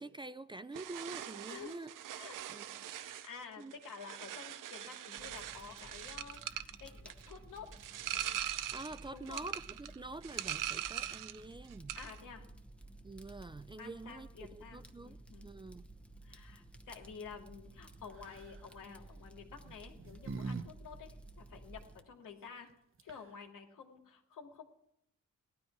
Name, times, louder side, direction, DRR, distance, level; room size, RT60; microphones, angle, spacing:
voice 1, 0.0-1.9 2.5-2.8 3.6-3.7 8.7-12.0 13.0-15.9, right 2 dB, 15° right, 0.4 m, -47 dB
sound 1, 0.7-11.4 11.7-12.2, right 11 dB, 85° right, 0.8 m, -42 dB
voice 2, 1.5-1.8 2.2-7.7 9.1-9.5 11.9-12.5 13.8-15.5 16.2-22.7 23.0-24.6, left 6 dB, 85° left, 2.6 m, -51 dB
Fire, 5.2-22.0, right 1 dB, 5° left, 0.9 m, -55 dB
sound 2, 18.2-18.6 19.6-20.7 20.9-21.0 22.7-22.8 23.0-23.4, right 4 dB, 40° right, 1.1 m, -42 dB
18.0 x 12.5 x 4.7 m
wide cardioid pair, 140°, 31 cm